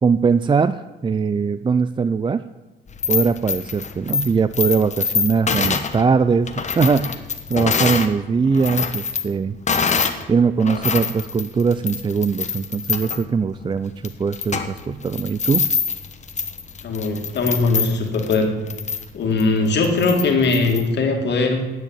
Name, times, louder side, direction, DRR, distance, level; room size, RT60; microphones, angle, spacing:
voice 1, 0.0-2.4 3.1-6.5 6.8-7.1 7.5-9.6 10.3-15.7, right 5 dB, 25° right, 13 dB, 0.4 m, -20 dB
sound 1, 2.9-8.1 8.5-10.2 10.6-20.8, left 5 dB, 35° left, 1.1 m, -25 dB
voice 2, 16.8-18.5 19.1-21.7, left 3 dB, 60° left, 3 dB, 2.3 m, -20 dB
9.8 x 7.6 x 8.9 m, 1.1 s
cardioid pair, 90°, 20 cm